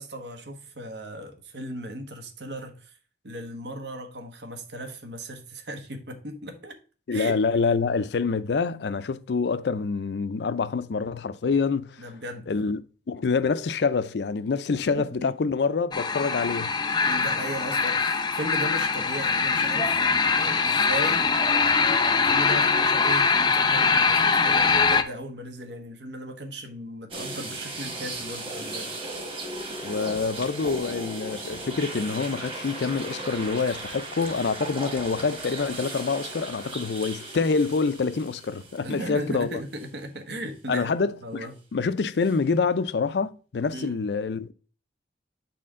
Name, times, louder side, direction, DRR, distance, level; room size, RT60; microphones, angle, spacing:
voice 1, 0.0-2.9 3.2-6.8 7.1-7.3 12.0-12.7 14.9-15.3 17.0-19.9 20.4-21.3 22.1-28.9 38.8-40.9 41.2-41.5 43.7-44.0, right 1 dB, 80° right, 1.3 m, -37 dB
voice 2, 7.1-12.0 12.5-12.8 13.1-16.7 29.8-39.6 40.7-44.5, left 4 dB, 75° left, 0.5 m, -26 dB
sound 1, 15.9-25.0, left 4 dB, 25° left, 0.5 m, -22 dB
sound 2, 27.1-39.3 39.8-39.9 42.2-42.3, right 2 dB, 30° right, 1.6 m, -37 dB
8.4 x 4.3 x 3.7 m
head